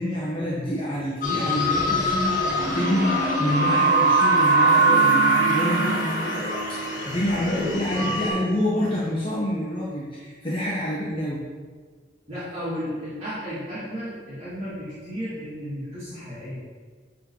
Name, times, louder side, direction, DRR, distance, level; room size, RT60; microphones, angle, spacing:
voice 1, 0.0-6.4 6.7-11.4, left 1 dB, 30° left, -8 dB, 1.4 m, -27 dB
sound 1, 1.2-8.3, right 2 dB, 45° left, 1.9 m, -22 dB
voice 2, 12.3-16.6, equal, 30° right, -12 dB, 2.4 m, -34 dB
10.0 x 4.2 x 4.8 m, 1.5 s
head